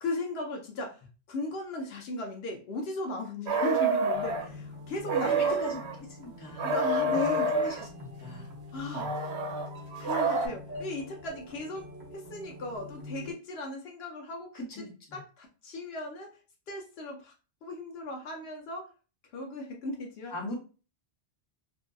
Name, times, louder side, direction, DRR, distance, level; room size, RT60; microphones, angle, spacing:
voice 1, 0.0-5.6 6.6-7.5 8.7-9.1 10.0-11.9 12.1-14.8 15.1-16.3 16.7-17.3 17.6-18.9 19.3-20.3, left 1 dB, 70° left, 2 dB, 0.8 m, -36 dB
sound 1, 3.5-4.4 5.0-5.9 6.6-7.8 8.9-10.5, right 2 dB, 85° right, 0.9 m, -28 dB
sound 2, 4.1-13.3, left 3 dB, 25° right, 0.7 m, -45 dB
voice 2, 5.2-5.8 6.1-8.5 8.9-9.1 14.5-15.2 20.3-20.5, left 1 dB, 20° left, -2 dB, 0.7 m, -41 dB
sound 3, 10.7-13.6, left 1 dB, 45° left, 1.0 m, -49 dB
2.6 x 2.4 x 2.2 m, 0.35 s
omnidirectional pair, 1.1 m